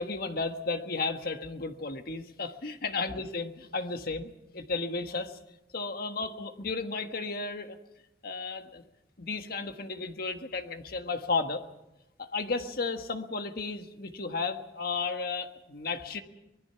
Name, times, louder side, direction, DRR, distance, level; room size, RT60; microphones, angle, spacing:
voice 1, 0.0-5.4 5.7-7.8 8.2-8.8 9.2-11.6 12.2-16.2, left 3 dB, 55° left, 7 dB, 1.5 m, -33 dB
25.0 x 20.0 x 5.8 m, 0.94 s
head